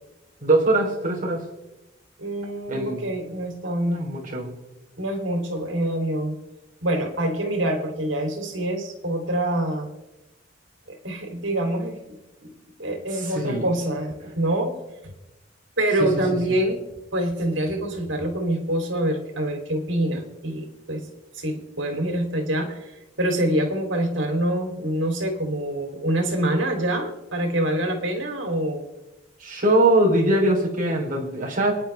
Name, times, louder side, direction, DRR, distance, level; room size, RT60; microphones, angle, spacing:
voice 1, 0.4-1.4 2.7-3.0 3.9-4.5 13.1-13.7 16.0-16.2 29.4-31.7, right 1 dB, 45° right, -1 dB, 3.6 m, -22 dB
voice 2, 2.2-4.1 5.0-6.4 6.8-9.9 10.9-12.5 12.8-14.8 15.8-16.8 17.1-21.1 21.3-22.9 23.2-28.8, right 1 dB, 80° right, 3 dB, 3.2 m, -26 dB
27.5 x 10.5 x 3.5 m, 0.99 s
head